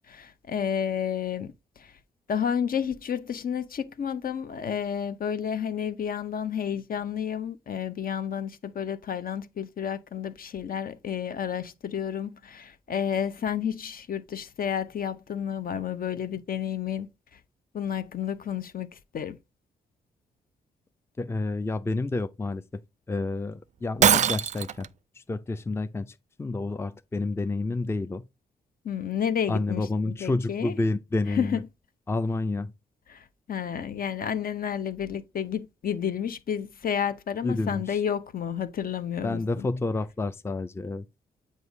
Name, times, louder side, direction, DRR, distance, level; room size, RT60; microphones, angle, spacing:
voice 1, 0.0-1.9 2.3-17.1 17.7-19.4 28.8-30.8 31.3-31.6 33.1-39.7, left 8 dB, 50° left, 0.7 m, -31 dB
voice 2, 21.2-22.6 23.1-24.9 25.2-28.2 29.5-31.6 32.1-32.7 37.4-38.0 39.2-41.0, left 2 dB, 15° left, 0.5 m, -29 dB
Shatter, 24.0-24.9, right 9 dB, 40° right, 0.4 m, -21 dB
7.8 x 2.7 x 4.9 m
hypercardioid pair, 45°, 19 cm